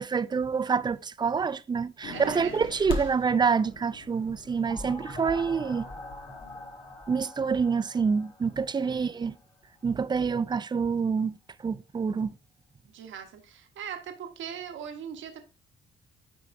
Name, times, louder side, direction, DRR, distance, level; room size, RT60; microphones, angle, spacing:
voice 1, 0.0-5.9 7.1-9.3 9.8-11.4 11.6-12.3, right 5 dB, 20° right, 0.3 m, -27 dB
sound 1, 2.0-6.9, left 3 dB, 85° left, 1.1 m, -41 dB
voice 2, 2.1-2.6 8.8-9.2 12.8-15.4, right 8 dB, 75° right, 1.0 m, -40 dB
sound 2, 4.7-9.4, left 1 dB, 25° left, 1.3 m, -43 dB
9.4 x 4.6 x 2.5 m
cardioid pair, 90°, 20 cm